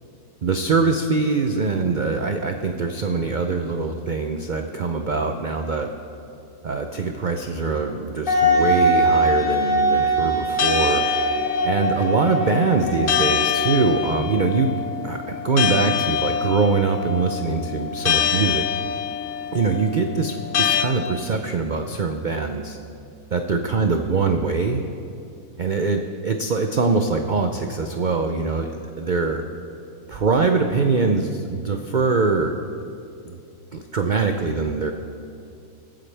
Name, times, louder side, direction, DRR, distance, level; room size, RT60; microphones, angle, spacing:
voice 1, 0.4-5.9 6.6-11.1 11.6-14.7 15.0-18.6 19.5-22.8 23.3-24.8 25.6-28.7 29.0-29.4 30.1-32.6 33.3-33.4 33.7-34.9, right 4 dB, 85° right, 5 dB, 0.4 m, -23 dB
Wind instrument woodwind instrument, 8.3-13.9, right 1 dB, 35° left, 1.4 m, -21 dB
sound 1, 10.6-20.8, left 8 dB, 70° left, 1.5 m, -25 dB
22.5 x 8.9 x 3.4 m, 2.5 s
omnidirectional pair, 1.7 m